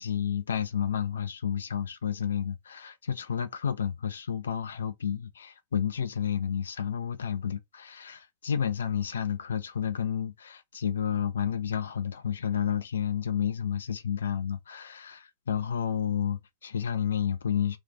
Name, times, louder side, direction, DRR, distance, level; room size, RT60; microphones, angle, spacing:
voice 1, 0.0-17.8, left 8 dB, 70° left, 0.4 m, -31 dB
2.7 x 2.4 x 3.8 m
figure-of-eight pair, 90°, 0 cm